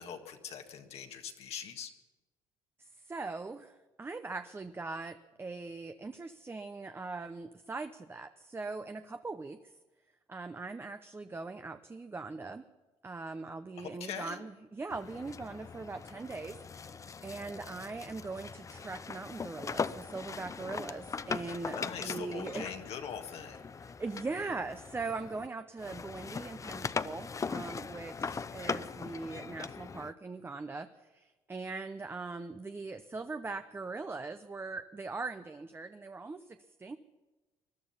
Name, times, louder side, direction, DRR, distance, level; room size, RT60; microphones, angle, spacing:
voice 1, 0.0-1.9 13.8-14.4 21.7-23.6, left 8 dB, 65° left, 4 dB, 1.7 m, -42 dB
voice 2, 2.8-9.6 10.3-12.6 13.0-22.8 24.0-37.0, right 3 dB, 20° right, 9 dB, 0.7 m, -41 dB
sound 1, 14.9-25.5 25.8-30.1, left 5 dB, 30° left, 0.6 m, -40 dB
21.0 x 12.0 x 5.7 m, 1.1 s
supercardioid pair, 80°, 11 cm